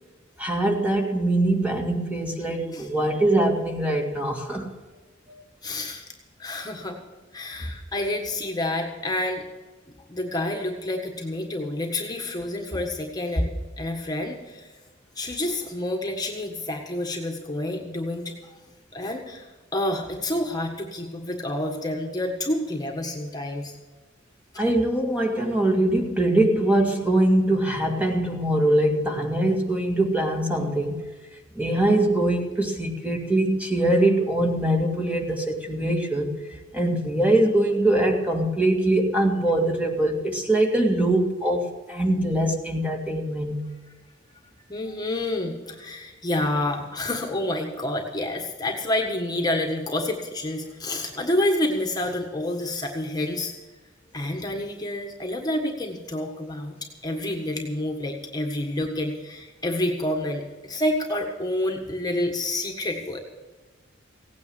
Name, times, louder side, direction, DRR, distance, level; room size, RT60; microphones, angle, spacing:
voice 1, 0.4-4.7 5.3-5.4 24.6-31.0 31.5-36.3 36.7-43.6, right 1 dB, 10° right, 1 dB, 2.0 m, -22 dB
voice 2, 5.6-6.0 6.4-7.0 7.3-9.4 10.1-13.5 13.8-14.7 15.1-18.6 18.9-23.8 24.5-24.6 44.7-53.5 54.1-56.8 57.0-63.2, left 1 dB, 20° left, 1 dB, 1.6 m, -28 dB
17.0 x 9.6 x 7.0 m, 1.3 s
head